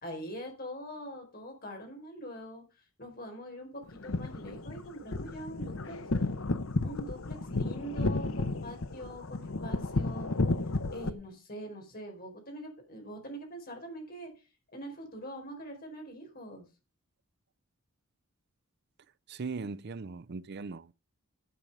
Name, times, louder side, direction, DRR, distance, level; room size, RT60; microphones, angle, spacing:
voice 1, 0.0-2.6 3.0-6.1 6.8-10.3 10.9-14.3 14.7-16.7, equal, 45° left, 4.5 m, -43 dB
sound 1, 3.9-11.1, left 2 dB, 70° left, 0.9 m, -32 dB
voice 2, 19.3-20.9, right 4 dB, 50° right, 0.5 m, -39 dB
12.0 x 7.3 x 5.4 m
head